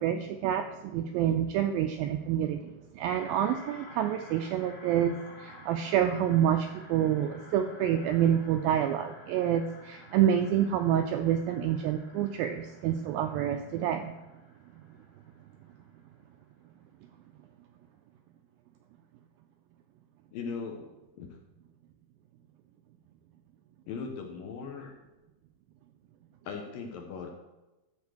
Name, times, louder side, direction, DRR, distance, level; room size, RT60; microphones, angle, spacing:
voice 1, 0.0-14.1 14.8-14.9, right 10 dB, 85° right, 6 dB, 2.1 m, -28 dB
sound 1, 3.1-15.8, left 2 dB, 55° left, 2.8 m, -52 dB
voice 2, 20.3-20.8 21.1-21.3 23.9-25.0 26.4-27.3, left 5 dB, 70° left, 2 dB, 2.4 m, -38 dB
13.0 x 4.4 x 6.3 m, 1.0 s
omnidirectional pair, 4.7 m